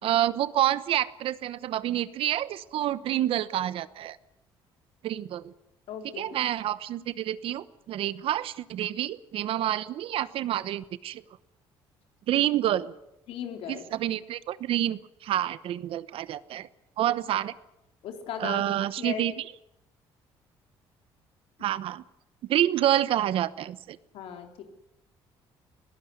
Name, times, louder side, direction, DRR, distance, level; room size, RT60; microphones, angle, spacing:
voice 1, 0.0-4.2 5.0-5.5 6.2-11.2 12.3-12.9 13.7-16.7 17.0-17.5 18.4-19.3 21.6-22.0 22.5-24.0, right 12 dB, 70° right, 16 dB, 1.0 m, -28 dB
voice 2, 5.9-6.4 13.3-13.9 18.0-19.3 24.1-24.6, left 8 dB, 80° left, 5 dB, 3.7 m, -37 dB
21.0 x 16.0 x 9.4 m, 0.86 s
cardioid pair, 95°, 10 cm